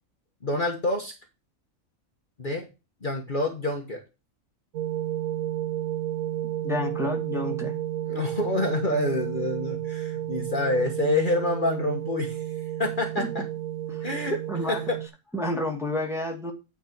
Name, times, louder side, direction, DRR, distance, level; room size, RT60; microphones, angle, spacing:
voice 1, 0.4-1.1 2.4-2.6 3.0-4.0 8.1-12.4 12.8-13.4 14.0-14.4 14.7-15.0, left 2 dB, 40° left, 3 dB, 1.4 m, -27 dB
sound 1, 4.7-15.1, right 12 dB, 90° right, 1.1 m, -32 dB
voice 2, 6.6-7.8 13.2-13.3 13.9-14.0 14.5-14.8 15.3-16.5, left 1 dB, ahead, 1 dB, 1.9 m, -30 dB
9.3 x 4.4 x 5.9 m, 0.27 s
omnidirectional pair, 1.4 m